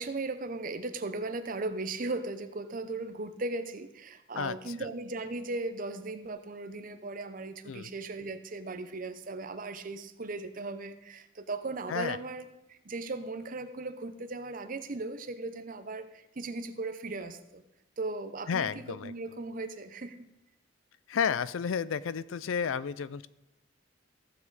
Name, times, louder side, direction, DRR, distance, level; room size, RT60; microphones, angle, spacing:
voice 1, 0.0-17.6 18.0-20.2, right 3 dB, 45° right, 10 dB, 0.7 m, -37 dB
voice 2, 4.3-4.7 7.7-7.9 11.9-12.2 18.5-19.1 21.1-23.3, left 7 dB, 85° left, 18 dB, 0.4 m, -32 dB
15.0 x 7.2 x 4.0 m, 0.89 s
head